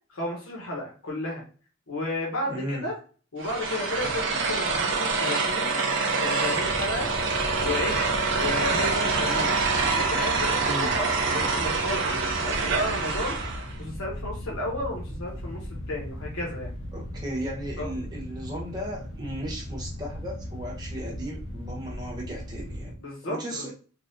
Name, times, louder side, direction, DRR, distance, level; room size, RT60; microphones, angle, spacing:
voice 1, 0.1-1.4 1.9-3.0 3.3-5.8 6.2-7.1 7.6-8.0 8.3-9.6 9.9-13.4 13.8-16.7 17.8-17.9 23.0-23.7, left 1 dB, 90° left, -3 dB, 1.1 m, -33 dB
voice 2, 2.5-2.9 10.6-11.0 16.9-22.9 23.2-23.7, equal, 20° right, -3 dB, 1.0 m, -35 dB
sound 1, 3.4-13.7, right 4 dB, 60° right, 0.6 m, -26 dB
sound 2, 6.5-23.0, equal, 75° left, 0.7 m, -38 dB
3.7 x 2.4 x 2.6 m, 0.39 s
head